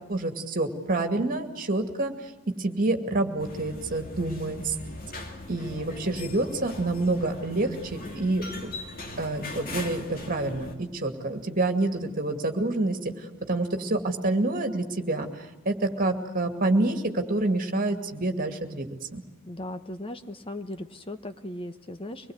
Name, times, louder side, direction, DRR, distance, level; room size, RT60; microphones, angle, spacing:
voice 1, 0.1-4.7 5.5-8.7 9.2-19.2, right 2 dB, 40° right, 6 dB, 2.4 m, -28 dB
sound 1, 3.4-10.7, left 2 dB, 40° left, 2.6 m, -40 dB
voice 2, 19.4-22.3, left 1 dB, 25° left, 9 dB, 1.1 m, -37 dB
25.0 x 20.5 x 8.1 m, 1.2 s
head